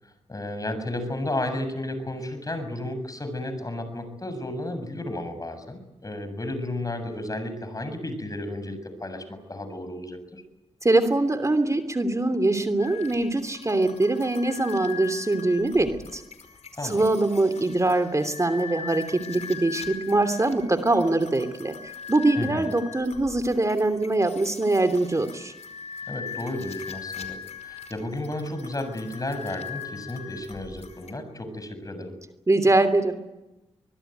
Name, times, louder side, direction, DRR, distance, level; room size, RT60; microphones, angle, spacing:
voice 1, 0.0-10.4 16.8-17.0 22.4-22.7 26.1-32.2, left 1 dB, 30° left, 9 dB, 7.4 m, -33 dB
voice 2, 10.8-16.2 16.8-25.5 32.5-33.1, right 2 dB, 25° right, 9 dB, 3.1 m, -23 dB
sound 1, 12.8-31.1, left 7 dB, 75° left, 5.0 m, -41 dB
24.5 x 21.0 x 9.4 m, 0.99 s
cardioid pair, 50°, 11 cm